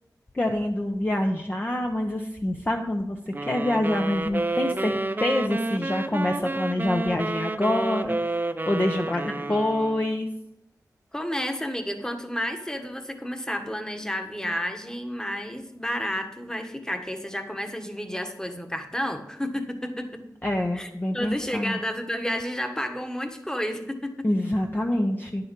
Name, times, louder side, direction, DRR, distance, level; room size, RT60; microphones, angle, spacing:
voice 1, 0.3-8.2 8.7-10.3 20.4-21.8 24.2-25.5, left 1 dB, 25° left, 2 dB, 0.8 m, -26 dB
sound 1, 3.3-10.1, right 2 dB, 30° right, 0.6 m, -30 dB
voice 2, 9.1-9.6 11.1-20.2 20.7-24.3, equal, 10° left, 6 dB, 1.4 m, -31 dB
10.0 x 6.9 x 5.4 m, 0.84 s
cardioid pair, 45°, 7 cm